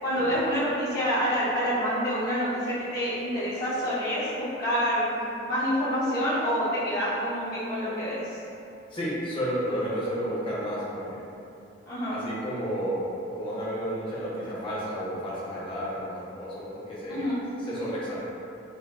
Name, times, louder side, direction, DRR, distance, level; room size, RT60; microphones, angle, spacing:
voice 1, 0.0-5.2 5.4-8.4 11.9-12.2 17.1-17.4, equal, 55° left, -11 dB, 1.0 m, -27 dB
voice 2, 8.9-11.2 12.1-13.0 13.3-17.3 17.6-18.1, equal, 25° left, -8 dB, 0.7 m, -32 dB
5.5 x 2.1 x 2.3 m, 2.8 s
head